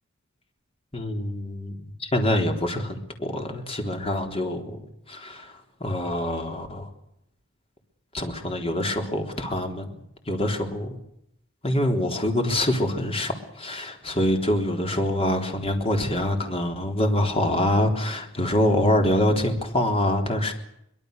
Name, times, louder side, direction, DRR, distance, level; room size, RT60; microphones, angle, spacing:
voice 1, 0.9-4.6 5.1-5.5 5.8-6.9 8.1-9.9 10.3-11.0 11.6-20.5, left 1 dB, 25° left, 4 dB, 3.8 m, -25 dB
24.0 x 22.0 x 6.7 m, 0.77 s
head